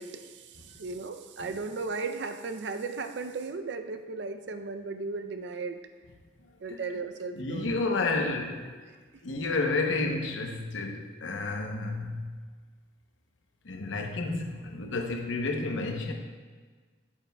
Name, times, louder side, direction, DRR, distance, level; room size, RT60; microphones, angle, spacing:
voice 1, 0.0-5.8 6.6-8.0, right 4 dB, 65° right, 8 dB, 0.5 m, -36 dB
voice 2, 7.4-8.7 9.2-12.3 13.6-16.1, left 3 dB, 80° left, 3 dB, 0.8 m, -31 dB
8.7 x 7.4 x 2.2 m, 1.5 s
head